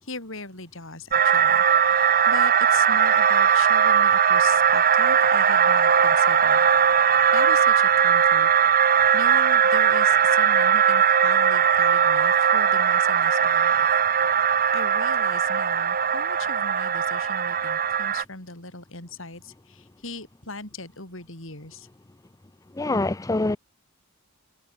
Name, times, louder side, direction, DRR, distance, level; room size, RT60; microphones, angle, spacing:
voice 1, 0.0-6.7 7.3-8.9 9.1-13.9 14.6-21.9, left 3 dB, 60° left, 6.3 m, -39 dB
sound 1, 1.1-18.2, right 7 dB, 40° right, 1.2 m, -19 dB
voice 2, 22.7-23.6, left 2 dB, 15° left, 0.5 m, -24 dB
head